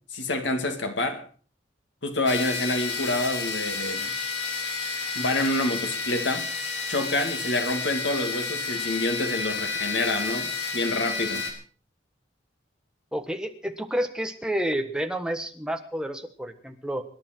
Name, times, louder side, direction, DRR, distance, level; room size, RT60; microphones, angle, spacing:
voice 1, 0.1-1.2 2.0-4.1 5.2-6.5 6.9-11.5, left 2 dB, 85° left, 2.5 m, -27 dB
sound 1, 2.3-11.5, left 4 dB, 70° left, 4.0 m, -31 dB
voice 2, 13.1-17.0, right 1 dB, 5° right, 1.4 m, -30 dB
26.0 x 10.5 x 4.5 m
head